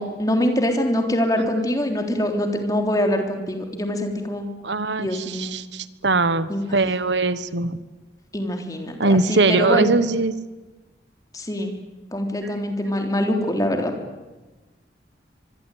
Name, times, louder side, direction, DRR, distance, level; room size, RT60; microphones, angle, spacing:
voice 1, 0.0-4.4 5.0-5.5 6.5-6.8 8.3-9.9 11.3-11.7 12.1-13.9, left 1 dB, 20° left, 4 dB, 3.5 m, -24 dB
voice 2, 4.6-7.8 9.0-10.3, right 3 dB, 85° right, 14 dB, 1.3 m, -21 dB
25.0 x 21.5 x 9.3 m, 1.2 s
head